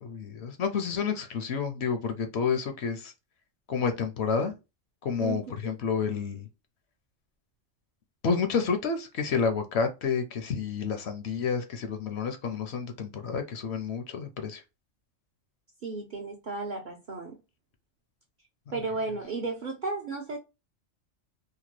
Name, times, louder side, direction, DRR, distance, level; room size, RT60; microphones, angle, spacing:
voice 1, 0.0-3.1 3.7-4.5 5.0-6.5 8.2-14.6, left 5 dB, 65° left, 0.8 m, -29 dB
voice 2, 15.8-17.4 18.7-20.4, right 3 dB, 55° right, 0.6 m, -34 dB
2.9 x 2.2 x 3.0 m
omnidirectional pair, 1.3 m